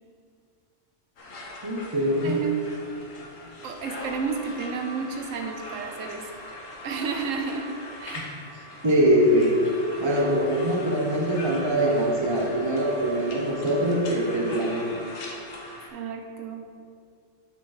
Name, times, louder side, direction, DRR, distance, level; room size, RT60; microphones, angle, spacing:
sound 1, 1.2-15.9, left 1 dB, 80° left, 1.4 m, -40 dB
voice 1, 1.6-2.4 8.2-8.3 8.8-9.6 10.0-15.0, right 1 dB, 25° right, 0 dB, 0.9 m, -23 dB
voice 2, 2.2-2.6 3.6-6.3 6.8-8.4 15.9-16.7, right 5 dB, 80° right, 5 dB, 1.1 m, -31 dB
8.1 x 6.0 x 4.2 m, 2.3 s
omnidirectional pair, 1.3 m